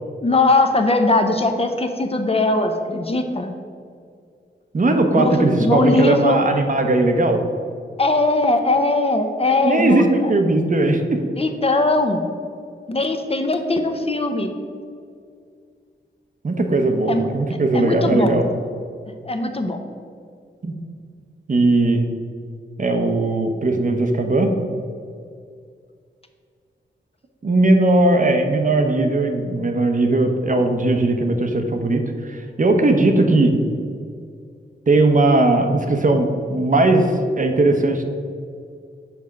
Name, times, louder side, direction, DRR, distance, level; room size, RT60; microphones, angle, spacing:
voice 1, 0.2-3.5 5.1-6.4 8.0-10.3 11.4-12.3 12.9-14.6 17.1-17.2 17.7-18.3 19.3-19.8, left 2 dB, 30° left, 5 dB, 0.6 m, -20 dB
voice 2, 4.7-7.4 9.6-11.2 16.4-18.4 20.6-20.7 21.5-22.0 22.8-24.5 27.4-33.6 34.9-38.0, right 2 dB, 45° right, 5 dB, 0.8 m, -18 dB
5.9 x 4.3 x 6.2 m, 2.2 s
wide cardioid pair, 75°, 19 cm